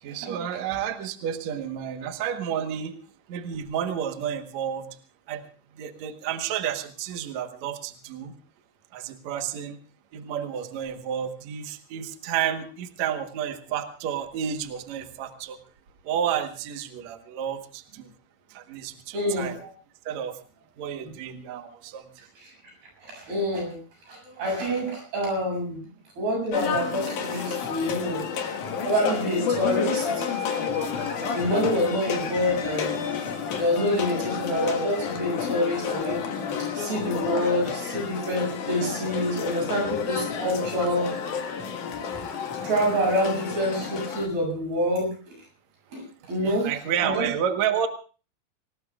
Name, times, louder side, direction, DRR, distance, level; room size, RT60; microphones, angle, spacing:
voice 1, 0.0-3.0 3.3-4.9 5.3-5.4 5.8-8.3 8.9-9.8 10.1-15.6 16.0-18.1 18.5-19.6 20.1-20.4 20.8-22.1 39.6-39.9 46.4-47.9, right 9 dB, 60° right, 7 dB, 2.1 m, -31 dB
voice 2, 19.1-19.7 23.0-23.8 24.1-25.9 26.2-28.2 28.5-30.2 31.1-33.0 33.6-36.2 36.7-41.1 42.6-45.1 45.9-46.0 46.3-46.7 47.0-47.3, equal, 90° right, 1 dB, 9.4 m, -27 dB
sound 1, 26.5-44.3, left 6 dB, 60° left, 3.0 m, -30 dB
27.0 x 18.5 x 2.4 m, 0.36 s
omnidirectional pair, 4.3 m